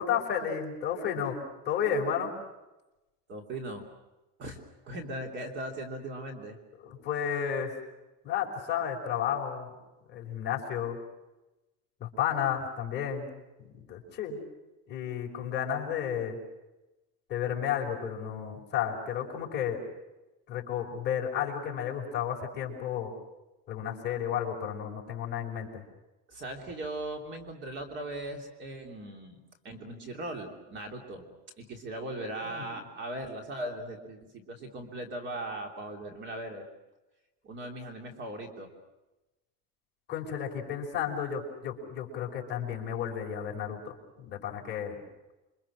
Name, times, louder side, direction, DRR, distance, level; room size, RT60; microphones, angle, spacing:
voice 1, 0.0-2.3 6.8-7.7 8.2-9.7 10.1-11.0 12.0-13.3 13.7-14.4 14.9-16.4 17.3-19.8 20.5-23.1 23.7-25.8 32.4-32.7 40.1-45.0, left 8 dB, 30° left, -1 dB, 5.2 m, -32 dB
voice 2, 3.3-3.9 4.4-6.6 26.3-29.4 29.6-31.2 31.6-36.6 37.4-38.7, right 1 dB, 35° right, 3 dB, 3.2 m, -39 dB
28.0 x 24.5 x 6.2 m, 1.0 s
cardioid pair, 175°, 33 cm